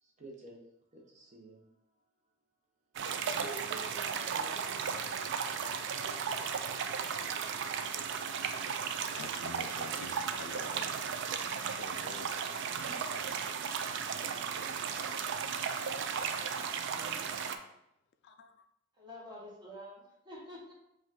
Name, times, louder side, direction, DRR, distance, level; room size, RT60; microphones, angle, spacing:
voice 1, 0.0-0.6 0.9-1.8 3.3-4.9 12.8-13.0 14.3-14.8 16.7-17.3, right 2 dB, 35° right, -2 dB, 0.8 m, -50 dB
sound 1, 2.9-17.6, right 6 dB, 60° right, 0.3 m, -35 dB
voice 2, 8.5-10.9 11.7-12.4 18.2-18.7, left 5 dB, 60° left, 8 dB, 0.3 m, -49 dB
voice 3, 19.0-20.7, left 1 dB, 20° right, -4 dB, 1.2 m, -48 dB
4.9 x 2.5 x 3.8 m, 0.81 s
head